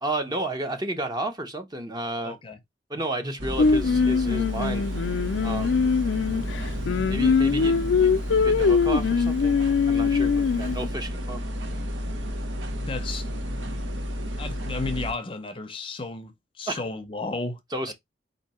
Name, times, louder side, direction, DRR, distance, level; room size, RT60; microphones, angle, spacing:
voice 1, 0.0-2.4 2.9-4.9 5.4-5.8 7.1-11.4 16.7-16.8 17.7-17.9, right 1 dB, 20° right, 0.8 m, -32 dB
voice 2, 2.2-2.6 12.8-13.3 14.4-17.6 17.9-18.0, left 3 dB, 30° left, 0.6 m, -33 dB
sound 1, 3.4-15.1, equal, 90° right, 1.0 m, -31 dB
Singing, 3.6-10.9, left 5 dB, 85° left, 0.4 m, -22 dB
4.4 x 2.7 x 4.1 m
head